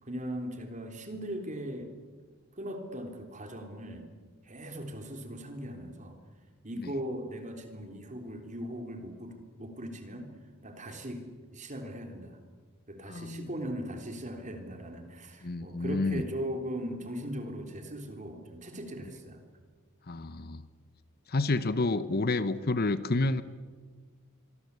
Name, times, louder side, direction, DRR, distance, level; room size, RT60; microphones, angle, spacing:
voice 1, 0.0-1.9 2.6-4.0 4.4-6.2 6.6-10.3 10.6-11.2 11.5-12.4 12.9-19.4, equal, 35° right, 5 dB, 3.6 m, -39 dB
voice 2, 13.1-13.5 15.4-16.2 20.1-20.6 21.3-23.4, left 2 dB, 45° left, 14 dB, 1.0 m, -29 dB
25.5 x 24.0 x 8.4 m, 1.5 s
head